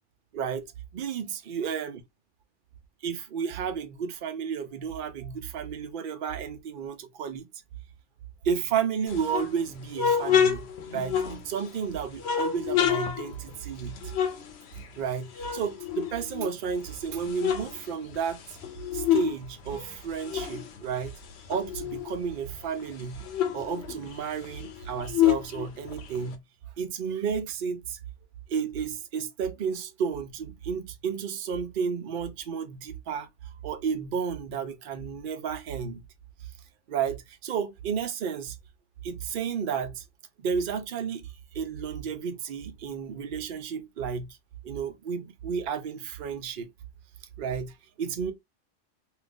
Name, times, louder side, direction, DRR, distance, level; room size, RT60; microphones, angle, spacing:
voice 1, 0.3-0.6 0.9-2.0 3.0-7.5 8.4-10.6 10.9-14.0 15.0-18.6 18.9-21.1 21.5-23.2 23.5-26.4 26.8-28.0 28.5-33.3 33.6-36.0 36.9-38.6 39.0-40.0 40.4-41.2 41.5-44.3 44.6-46.7 47.4-48.3, right 7 dB, 55° right, 0.7 m, -32 dB
sound 1, 9.1-11.8 12.2-15.1 15.4-16.7 17.1-19.4 19.7-22.2 22.6-22.7 22.9-26.3, left 9 dB, 65° left, 0.9 m, -28 dB
2.8 x 2.5 x 3.4 m
omnidirectional pair, 1.2 m